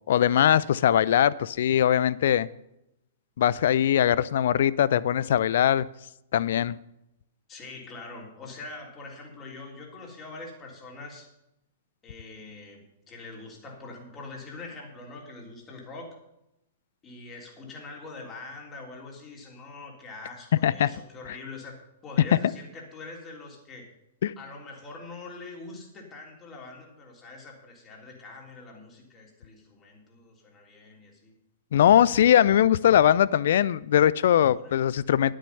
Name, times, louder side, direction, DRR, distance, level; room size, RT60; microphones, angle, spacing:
voice 1, 0.1-2.5 3.4-5.9 6.3-6.8 20.6-20.9 24.2-24.3 31.7-35.3, left 10 dB, 55° left, 19 dB, 0.5 m, -21 dB
voice 2, 7.5-11.3 12.0-16.2 17.0-21.7 22.0-23.9 24.4-31.3 34.5-34.8, left 3 dB, 20° left, 0 dB, 3.5 m, -43 dB
11.5 x 10.0 x 5.5 m, 0.85 s
figure-of-eight pair, 105°, 0 cm